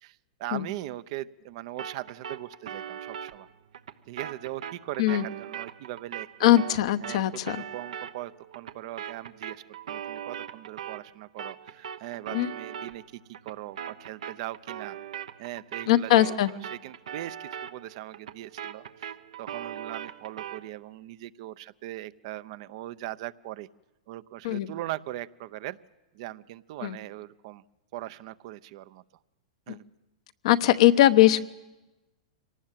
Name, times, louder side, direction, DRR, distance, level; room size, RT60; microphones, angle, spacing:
voice 1, 0.0-3.5 4.1-6.5 7.0-15.0 15.4-19.1 19.4-23.7 24.1-25.8 26.1-27.6 27.9-29.0 29.7-29.8, right 15 dB, 55° right, 14 dB, 0.7 m, -40 dB
sound 1, 1.8-11.1 11.4-20.7, right 9 dB, 80° right, 1.0 m, -40 dB
voice 2, 6.4-7.6 12.3-12.5 15.9-16.5 24.4-24.7 26.8-27.0 29.7-29.8 30.4-31.5, left 14 dB, 65° left, 10 dB, 1.0 m, -21 dB
24.0 x 19.0 x 7.5 m, 1.0 s
hypercardioid pair, 120°, 4 cm